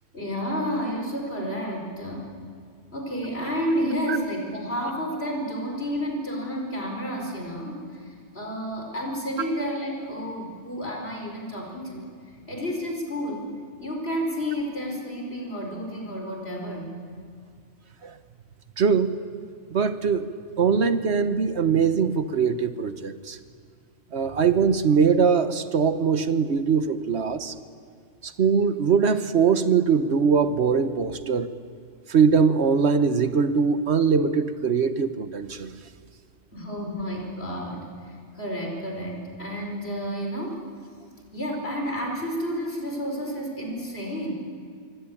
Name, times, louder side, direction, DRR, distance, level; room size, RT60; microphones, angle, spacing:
voice 1, 0.1-2.4 2.9-12.1 12.5-13.5 13.8-17.0 36.5-40.6 41.3-44.3, equal, 60° left, 1 dB, 5.2 m, -31 dB
voice 2, 18.8-19.2 19.7-20.3 20.6-23.4 24.1-27.5 28.2-31.5 32.1-35.7, right 6 dB, 70° right, 11 dB, 1.3 m, -22 dB
26.5 x 23.0 x 8.7 m, 2.2 s
omnidirectional pair, 1.2 m